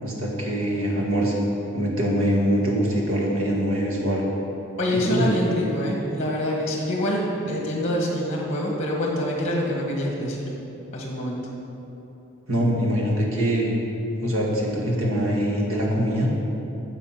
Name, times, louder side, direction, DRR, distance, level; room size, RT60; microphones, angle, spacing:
voice 1, 0.0-1.4 1.7-4.2 5.1-5.2 12.5-13.7 14.2-16.3, equal, 80° right, -2 dB, 1.9 m, -23 dB
voice 2, 4.8-10.5 10.9-11.4, left 1 dB, 30° left, -1 dB, 1.5 m, -25 dB
10.0 x 7.0 x 5.9 m, 3.0 s
head